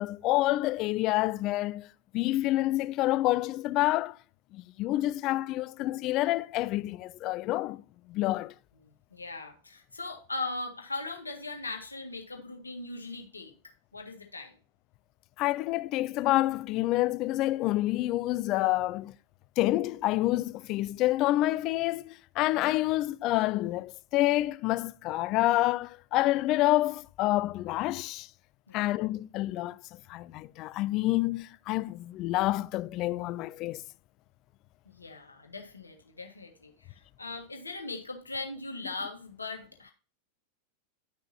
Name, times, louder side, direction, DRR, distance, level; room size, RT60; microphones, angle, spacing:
voice 1, 0.0-1.9 2.1-4.2 4.5-7.8 8.1-8.5 15.4-19.1 19.6-28.3 28.7-33.8, left 17 dB, 40° left, 0.4 m, -28 dB
voice 2, 8.8-13.5 13.9-14.5 28.7-29.0 34.8-39.9, left 3 dB, 80° left, 1.7 m, -39 dB
10.5 x 6.3 x 2.7 m
figure-of-eight pair, 90°, 0 cm